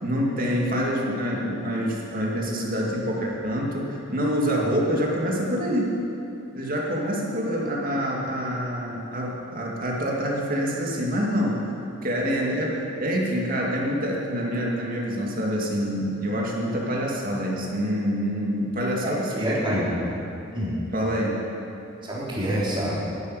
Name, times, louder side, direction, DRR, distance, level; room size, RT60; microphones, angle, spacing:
voice 1, 0.0-6.0 6.6-11.6 12.0-19.9 20.9-21.5, equal, 45° right, -2 dB, 2.4 m, -26 dB
voice 2, 19.0-20.0 20.5-20.8 22.0-23.0, equal, 25° right, -8 dB, 3.7 m, -27 dB
11.5 x 8.6 x 9.8 m, 2.9 s
head